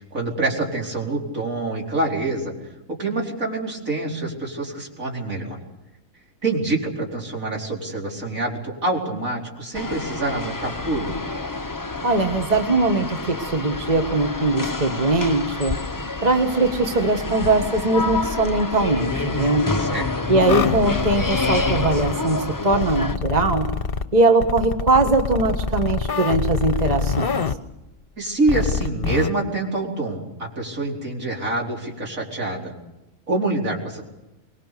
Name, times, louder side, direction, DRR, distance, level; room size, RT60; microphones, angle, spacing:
voice 1, 0.0-2.5 2.9-5.6 6.4-11.1 19.7-20.2 28.2-32.7 33.3-34.0, right 2 dB, 70° right, 0 dB, 4.9 m, -26 dB
sound 1, 9.7-23.2, left 3 dB, 15° left, 0.8 m, -28 dB
voice 2, 12.0-15.8 16.2-19.7 20.3-23.7 24.1-27.4, right 2 dB, 30° right, 5 dB, 1.6 m, -20 dB
sound 2, 20.5-22.2 22.7-24.0 24.4-27.5 28.5-29.3, left 5 dB, 45° left, 1.1 m, -25 dB
24.5 x 21.0 x 6.8 m, 0.95 s
omnidirectional pair, 1.4 m